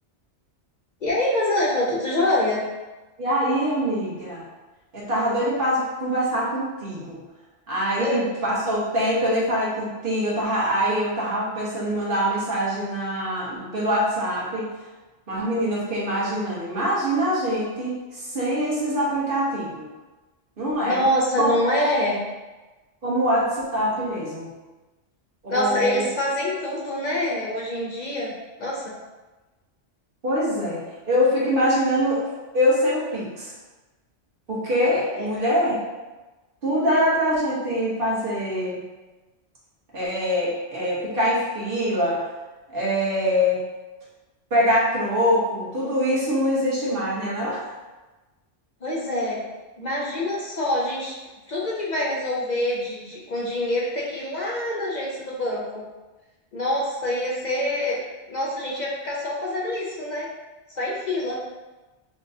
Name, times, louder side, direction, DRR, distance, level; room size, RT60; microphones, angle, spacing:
voice 1, 1.0-2.6 8.0-8.2 20.8-22.2 25.5-28.3 28.6-28.9 35.1-35.3 48.8-49.4 49.8-51.1 51.5-55.8 56.5-58.0 58.3-60.3 60.7-61.4, left 1 dB, 50° left, -4 dB, 0.6 m, -25 dB
voice 2, 3.2-4.4 4.9-7.2 7.7-14.7 15.3-19.9 20.6-21.1 21.4-21.5 23.0-24.5 25.4-26.1 30.2-33.5 34.5-35.8 36.6-38.8 39.9-42.2 42.7-43.6 44.5-47.6, equal, 50° right, -8 dB, 1.4 m, -24 dB
5.9 x 2.3 x 2.7 m, 1.2 s
omnidirectional pair, 1.2 m